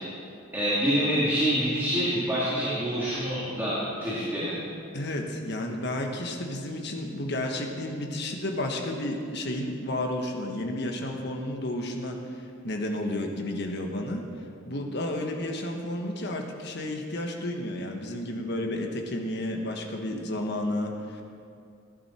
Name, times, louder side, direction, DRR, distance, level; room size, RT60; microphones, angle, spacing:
voice 1, 0.5-4.6, equal, 10° right, -9 dB, 2.5 m, -26 dB
voice 2, 4.9-14.3 14.7-21.2, left 1 dB, 60° left, 2 dB, 1.5 m, -32 dB
15.5 x 11.0 x 4.5 m, 2.5 s
head